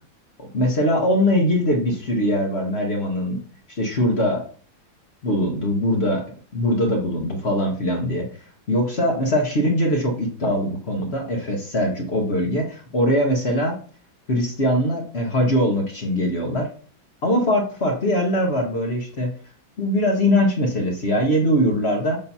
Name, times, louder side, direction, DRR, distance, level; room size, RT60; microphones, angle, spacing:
voice 1, 0.4-3.4 3.8-4.4 5.2-6.2 6.5-8.3 8.7-13.7 14.3-16.7 17.2-19.3 19.8-22.2, equal, 40° left, 1 dB, 1.1 m, -21 dB
7.2 x 2.8 x 5.4 m, 0.43 s
omnidirectional pair, 2.1 m